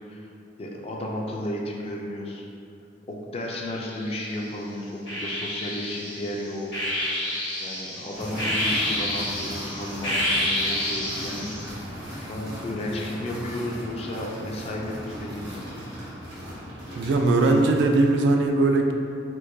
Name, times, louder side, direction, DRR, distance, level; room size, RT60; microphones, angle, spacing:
voice 1, 0.6-2.5 3.1-7.3 7.6-11.9 12.2-15.8, left 1 dB, 35° left, -1 dB, 0.3 m, -33 dB
sound 1, 3.7-4.4 5.1-11.7, left 1 dB, 75° left, 1.3 m, -29 dB
sound 2, 8.1-18.2, equal, 85° right, 1.3 m, -38 dB
voice 2, 16.9-18.9, right 2 dB, 65° right, 2 dB, 0.3 m, -20 dB
4.4 x 2.2 x 2.6 m, 2.6 s
head